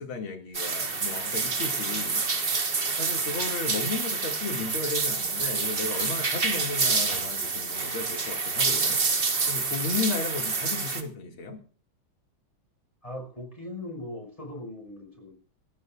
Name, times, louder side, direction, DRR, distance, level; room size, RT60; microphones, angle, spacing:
voice 1, 0.0-2.6 3.0-11.6, left 4 dB, 90° left, 3.0 m, -34 dB
sound 1, 0.5-11.0, right 4 dB, 30° right, 1.4 m, -28 dB
voice 2, 13.0-15.4, left 1 dB, 15° left, 5.4 m, -39 dB
26.0 x 15.0 x 2.4 m
omnidirectional pair, 2.2 m